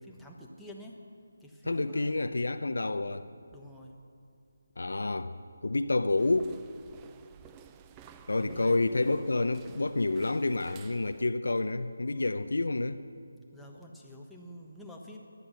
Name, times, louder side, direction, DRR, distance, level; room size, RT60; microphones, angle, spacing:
voice 1, 0.0-1.0 1.4-2.2 3.5-4.0 8.4-8.8 13.5-15.2, equal, ahead, -4 dB, 1.2 m, -48 dB
voice 2, 1.7-3.3 4.8-5.3 5.6-6.5 8.3-13.0, left 2 dB, 75° left, 10 dB, 0.7 m, -29 dB
sound 1, 6.2-11.3, right 8 dB, 15° right, 0.5 m, -53 dB
18.5 x 11.5 x 6.5 m, 2.4 s
figure-of-eight pair, 160°, 0 cm